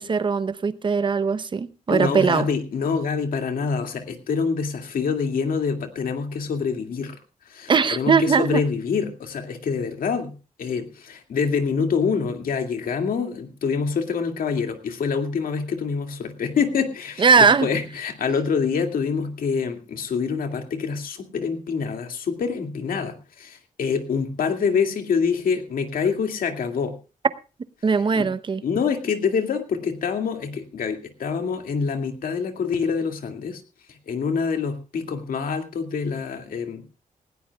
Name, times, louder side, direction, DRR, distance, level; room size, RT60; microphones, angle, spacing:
voice 1, 0.0-2.5 7.7-8.6 17.2-17.7 27.8-28.6, right 5 dB, 35° right, 0.8 m, -20 dB
voice 2, 1.9-7.2 7.5-27.0 28.1-28.3 28.6-33.6 33.9-36.8, left 5 dB, 90° left, 2.3 m, -26 dB
19.5 x 17.0 x 2.3 m
wide cardioid pair, 165°, 14 cm